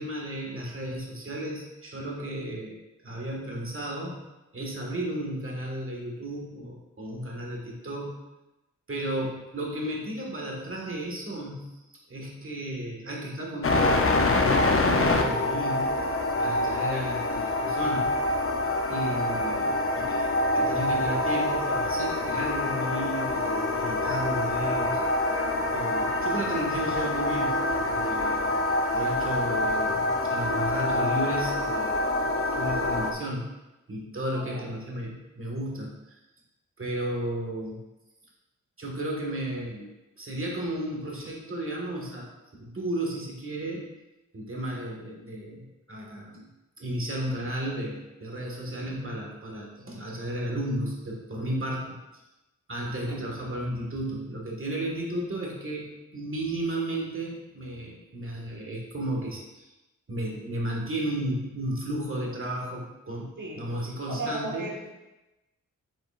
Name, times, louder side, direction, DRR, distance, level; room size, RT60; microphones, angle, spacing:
voice 1, 0.0-2.8 3.0-4.3 4.5-8.2 8.9-15.9 16.4-18.1 18.9-20.3 20.5-25.0 25.7-28.5 28.9-32.1 32.5-33.5 33.9-36.2 36.8-37.8 38.8-42.3 42.6-43.9 44.3-46.5 46.8-51.9 52.7-59.7 60.1-64.6, right 1 dB, 40° right, -1 dB, 1.6 m, -34 dB
sound 1, 13.6-33.1, left 2 dB, 40° left, 0.7 m, -26 dB
voice 2, 34.3-34.7 53.1-53.2 63.4-63.7 64.1-64.9, right 2 dB, 75° right, -3 dB, 1.5 m, -36 dB
7.7 x 5.0 x 2.5 m, 1.0 s
wide cardioid pair, 75°, 32 cm